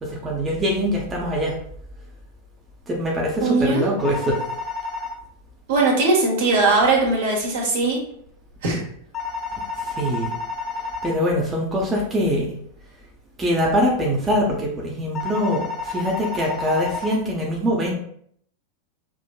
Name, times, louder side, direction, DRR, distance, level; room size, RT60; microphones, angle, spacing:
voice 1, 0.0-1.6 2.9-4.4 9.8-10.3 11.0-12.5 13.4-17.9, equal, 20° right, -2 dB, 0.8 m, -23 dB
voice 2, 3.4-3.9 5.7-8.0 8.6-8.8, right 3 dB, 55° right, -1 dB, 1.3 m, -19 dB
sound 1, 4.0-5.1 9.1-11.1 15.1-17.1, left 4 dB, 25° left, 0.8 m, -30 dB
6.0 x 3.0 x 2.2 m, 0.66 s
figure-of-eight pair, 90°, 0 cm